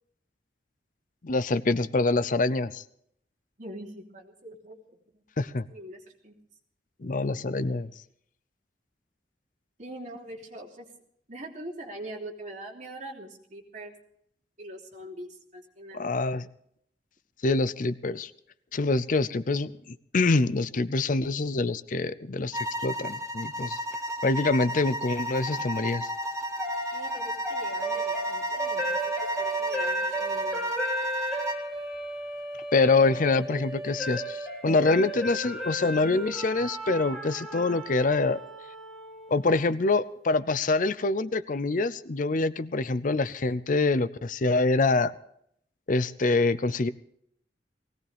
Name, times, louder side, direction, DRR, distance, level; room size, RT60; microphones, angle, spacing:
voice 1, 1.2-2.8 5.4-5.7 7.0-7.9 15.9-16.5 17.4-18.3 18.7-19.7 20.1-23.8 24.2-26.1 32.7-38.4 39.3-45.1 45.9-46.9, left 3 dB, 50° left, 16 dB, 0.6 m, -25 dB
voice 2, 3.6-6.4 9.8-10.9 11.3-13.9 14.6-16.1 26.9-30.7, right 1 dB, 45° right, 0 dB, 3.2 m, -43 dB
sound 1, 22.5-31.7, right 1 dB, 20° right, 1.1 m, -33 dB
sound 2, 25.5-39.6, right 1 dB, ahead, 3.1 m, -34 dB
19.5 x 17.5 x 3.5 m, 0.69 s
head